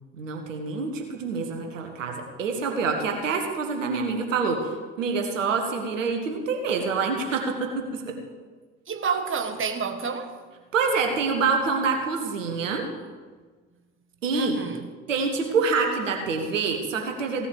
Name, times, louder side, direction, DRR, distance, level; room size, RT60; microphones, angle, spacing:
voice 1, 0.1-4.7 5.0-8.1 10.7-12.9 14.2-14.6 15.1-17.5, right 4 dB, 85° right, 1.6 m, -26 dB
voice 2, 8.9-10.4 14.3-14.9, right 5 dB, 35° right, 1.5 m, -29 dB
16.0 x 8.0 x 7.8 m
hypercardioid pair, 60°, 37 cm